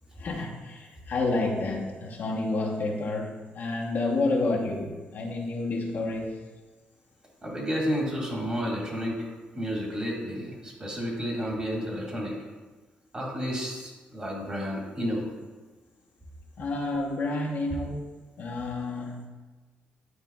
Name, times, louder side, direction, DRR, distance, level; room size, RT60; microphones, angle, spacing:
voice 1, 0.2-6.4 16.6-18.1 18.4-19.3, left 2 dB, 60° left, -1 dB, 1.0 m, -29 dB
voice 2, 7.4-9.2 9.6-12.4 13.1-15.3, equal, 25° right, -2 dB, 1.8 m, -31 dB
9.5 x 4.8 x 2.3 m, 1.3 s
cardioid pair, 110°, 4 cm